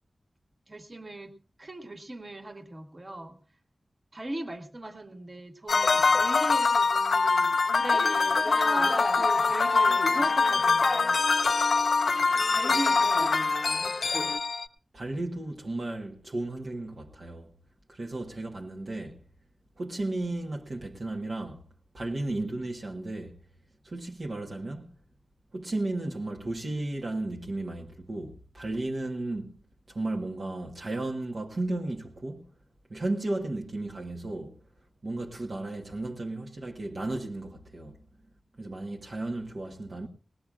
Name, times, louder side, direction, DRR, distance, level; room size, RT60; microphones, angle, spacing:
voice 1, 0.7-1.3 1.6-3.4 4.1-11.3 12.5-13.4 13.7-14.0, right 1 dB, 35° right, 1.8 m, -38 dB
sound 1, 5.7-14.7, left 4 dB, 85° left, 0.8 m, -24 dB
sound 2, 7.9-14.4, left 2 dB, 25° left, 0.8 m, -37 dB
voice 2, 14.9-17.5 17.9-19.2 19.8-21.6 21.9-23.4 23.8-24.9 25.5-29.5 29.9-32.5 32.9-34.6 35.0-38.0 38.6-40.1, right 2 dB, 60° right, 1.3 m, -34 dB
20.0 x 19.5 x 2.4 m
wide cardioid pair, 95°, 0 cm